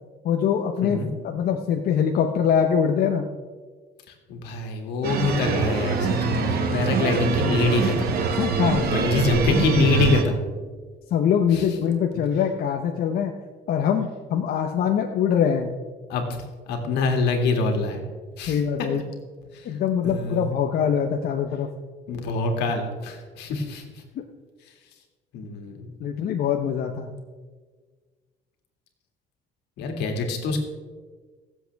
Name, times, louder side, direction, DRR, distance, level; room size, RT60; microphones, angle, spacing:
voice 1, 0.2-1.0 1.2-3.3 8.4-8.8 11.1-13.3 13.7-15.8 18.5-19.1 19.6-21.7 26.0-27.2, left 8 dB, 65° left, 4 dB, 0.9 m, -23 dB
voice 2, 0.8-1.1 4.1-8.1 8.8-10.4 11.5-11.7 16.1-18.0 18.4-18.6 19.5-19.8 20.0-20.6 22.1-24.0 25.3-25.9 29.8-30.6, left 3 dB, 85° left, 3 dB, 2.3 m, -25 dB
sound 1, 5.0-10.2, right 5 dB, 65° right, 1.6 m, -24 dB
22.5 x 7.6 x 3.5 m, 1.5 s
cardioid pair, 110°, 17 cm